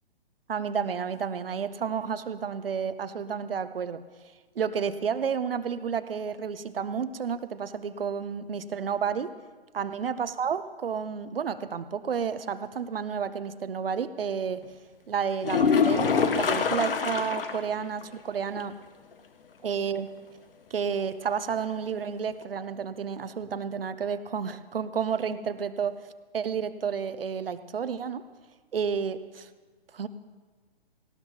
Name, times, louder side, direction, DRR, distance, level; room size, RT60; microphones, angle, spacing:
voice 1, 0.5-4.0 4.6-9.3 9.7-14.6 15.1-18.8 19.6-20.1 20.7-26.1 26.3-28.3 28.7-29.5 29.9-30.1, right 6 dB, 65° right, 13 dB, 0.8 m, -31 dB
sound 1, 15.4-17.7 18.0-18.1 18.6-18.7 22.4-22.5, left 6 dB, 65° left, 1.2 m, -24 dB
18.5 x 16.5 x 2.9 m, 1.4 s
figure-of-eight pair, 130°, 30 cm